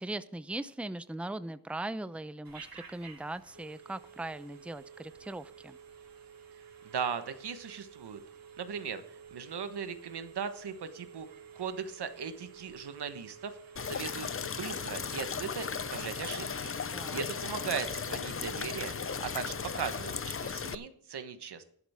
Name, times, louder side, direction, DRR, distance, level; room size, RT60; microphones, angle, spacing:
voice 1, 0.0-5.8 16.9-17.2, right 2 dB, 5° right, 13 dB, 0.6 m, -39 dB
Telephone, 2.4-20.5, right 7 dB, 60° right, 3.7 m, -52 dB
voice 2, 6.8-8.2 8.6-11.3 11.5-21.6, right 6 dB, 90° right, 9 dB, 1.3 m, -38 dB
sound 1, 13.8-20.8, left 6 dB, 35° left, 0.6 m, -36 dB
12.5 x 11.5 x 3.6 m, 0.68 s
cardioid pair, 60°, 39 cm